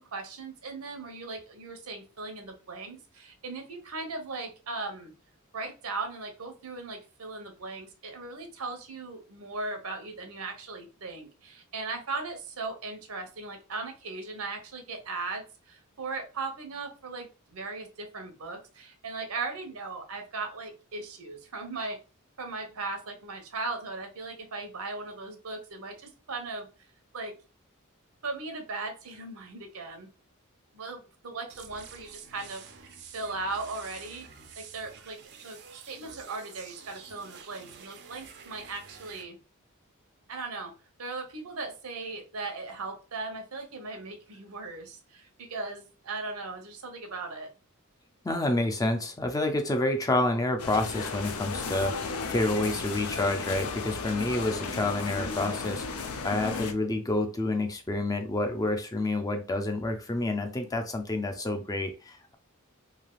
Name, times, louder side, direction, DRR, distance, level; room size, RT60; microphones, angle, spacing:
voice 1, 0.0-5.1 5.5-22.0 22.4-26.7 27.1-27.3 28.2-30.1 30.7-34.3 34.6-35.2 35.4-35.6 35.8-39.4 40.3-40.7 41.0-47.5, right 3 dB, 80° right, 5 dB, 0.9 m, -38 dB
sound 1, 31.5-39.2, right 6 dB, 50° right, 0.5 m, -49 dB
voice 2, 48.2-62.3, left 2 dB, 15° left, 5 dB, 0.4 m, -29 dB
sound 2, 50.6-56.7, left 4 dB, 85° left, 0.5 m, -34 dB
3.3 x 2.7 x 2.3 m, 0.33 s
head